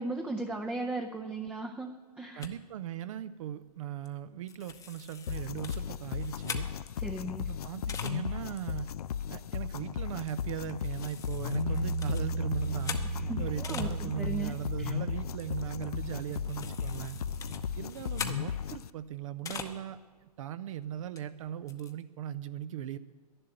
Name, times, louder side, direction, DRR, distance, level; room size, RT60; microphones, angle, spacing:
voice 1, 0.0-2.5 7.0-7.5 13.1-15.0, right 2 dB, 5° right, 3 dB, 0.6 m, -37 dB
sound 1, 2.4-2.5 4.0-4.2 4.5-7.1 7.6-8.2 8.8-8.9 9.2-9.4 10.3-10.6 10.8-13.9 14.3-19.8 20.2-20.3 21.1-21.2 21.4-21.9, left 6 dB, 15° left, 0.9 m, -43 dB
voice 2, 2.4-6.7 7.4-8.9 9.3-13.0 13.4-17.2 17.8-23.0, right 10 dB, 55° right, 13 dB, 0.6 m, -38 dB
sound 2, 5.3-18.9, left 8 dB, 70° left, 0.4 m, -36 dB
Bass guitar, 11.5-17.8, right 3 dB, 80° right, 3.0 m, -37 dB
11.0 x 11.0 x 7.8 m, 1.5 s
figure-of-eight pair, 110°, 20 cm